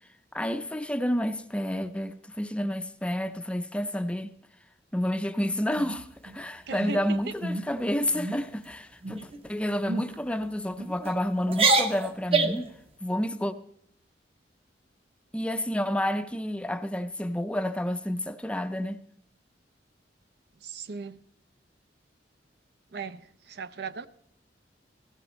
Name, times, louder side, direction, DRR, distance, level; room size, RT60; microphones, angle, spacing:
voice 1, 0.3-4.3 4.9-12.7 13.0-13.5 15.3-19.0, equal, 5° left, 0.5 m, -30 dB
sound 1, 5.7-6.4 6.8-7.0 7.4-7.7 8.1-8.4 9.0-9.4 9.9-10.1 10.8-11.1 11.5-12.7, right 3 dB, 35° right, 0.9 m, -27 dB
voice 2, 6.7-7.2 20.6-21.2 22.9-24.1, right 5 dB, 65° right, 0.5 m, -38 dB
16.5 x 14.5 x 3.1 m
head